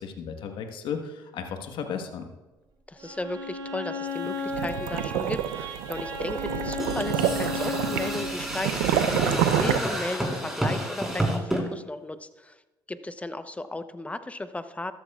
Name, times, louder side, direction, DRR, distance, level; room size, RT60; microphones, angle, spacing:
voice 1, 0.0-2.3, left 6 dB, 70° left, 5 dB, 1.3 m, -34 dB
voice 2, 2.9-12.6 12.9-14.9, left 2 dB, 15° left, 11 dB, 0.8 m, -35 dB
Bowed string instrument, 3.0-8.4, left 3 dB, 70° right, 3.7 m, -34 dB
sound 1, 4.2-9.8, right 10 dB, 90° right, 0.6 m, -28 dB
sound 2, 6.8-11.6, right 1 dB, 5° right, 4.0 m, -30 dB
13.5 x 13.0 x 2.4 m, 1.1 s
supercardioid pair, 60°, 9 cm